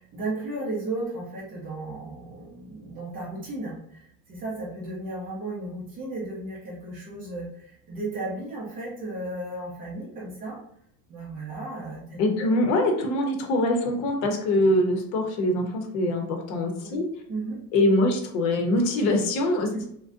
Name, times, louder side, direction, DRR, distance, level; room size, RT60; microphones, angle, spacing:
voice 1, 0.0-10.6 11.1-12.2 16.8-17.0 17.3-17.6 19.7-19.9, right 2 dB, 20° right, -4 dB, 0.3 m, -34 dB
voice 2, 12.2-17.1 17.7-19.9, left 1 dB, 60° left, 3 dB, 0.7 m, -23 dB
2.4 x 2.1 x 2.4 m, 0.71 s
supercardioid pair, 140°, 48 cm